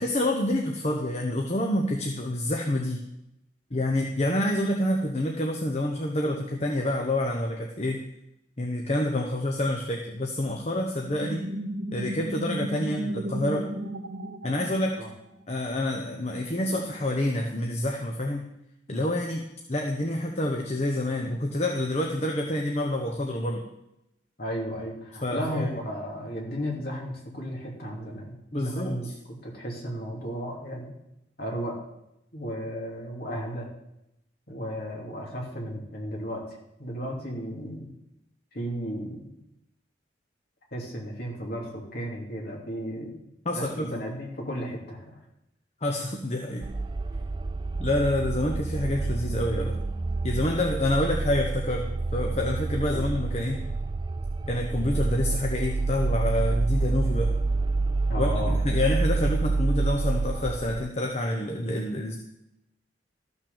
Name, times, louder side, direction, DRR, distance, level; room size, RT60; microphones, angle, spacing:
voice 1, 0.0-3.0 3.7-8.0 8.6-11.5 11.9-13.7 14.4-15.0 15.5-18.5 18.9-19.4 19.7-23.7 25.2-25.7 28.5-29.1 43.4-44.0 45.8-46.7 47.8-49.8 50.2-53.6 54.5-57.3 58.2-62.2, left 1 dB, 35° left, 2 dB, 1.0 m, -27 dB
sound 1, 11.2-15.4, right 1 dB, 70° right, 0.9 m, -34 dB
voice 2, 24.4-29.1 29.4-30.9 31.4-31.8 32.3-33.7 34.5-36.4 36.8-37.9 38.5-39.4 40.7-43.2 43.5-45.2 52.9-53.1 58.1-58.6, equal, 50° left, -1 dB, 3.0 m, -34 dB
sound 2, 46.6-60.9, right 3 dB, 25° right, 0.3 m, -28 dB
13.5 x 6.1 x 7.0 m, 0.85 s
head